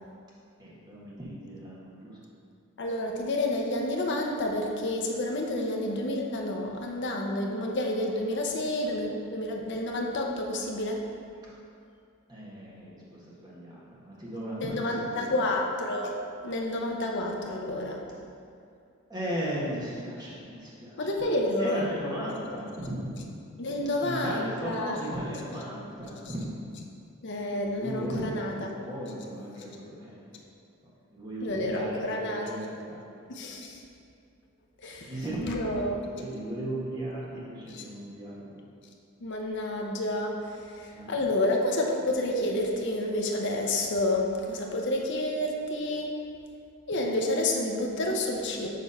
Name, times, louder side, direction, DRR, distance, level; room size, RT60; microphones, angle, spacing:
voice 1, 0.6-2.2 12.3-15.4 19.1-21.1 21.6-23.2 24.0-26.5 27.6-30.4 31.1-33.0 34.8-38.6 40.9-41.1, right 1 dB, 20° right, -7 dB, 1.5 m, -36 dB
voice 2, 2.8-11.0 14.6-18.0 21.0-21.9 23.6-25.0 27.2-28.7 31.4-32.5 33.3-33.8 34.8-35.1 35.4-36.0 37.7-37.8 39.2-46.2 46.9-48.7, left 1 dB, 55° left, 0 dB, 0.7 m, -29 dB
6.6 x 3.5 x 5.5 m, 2.4 s
head